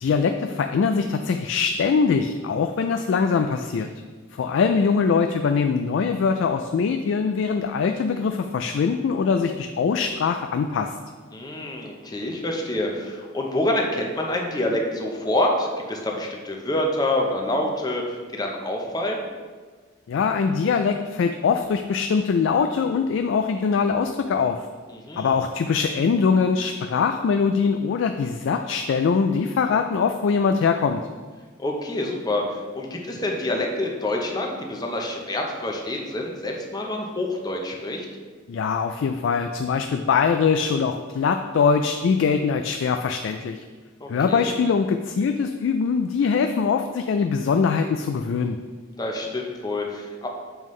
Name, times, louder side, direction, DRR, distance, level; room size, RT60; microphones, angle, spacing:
voice 1, 0.0-3.9 4.4-11.0 20.1-24.6 25.2-31.0 38.5-43.6 44.1-48.6, left 5 dB, 70° left, 6 dB, 0.3 m, -22 dB
voice 2, 11.3-19.3 24.9-25.4 31.6-38.1 44.0-44.5 49.0-50.3, left 1 dB, 20° left, 1 dB, 0.7 m, -27 dB
7.1 x 5.5 x 3.2 m, 1.5 s
head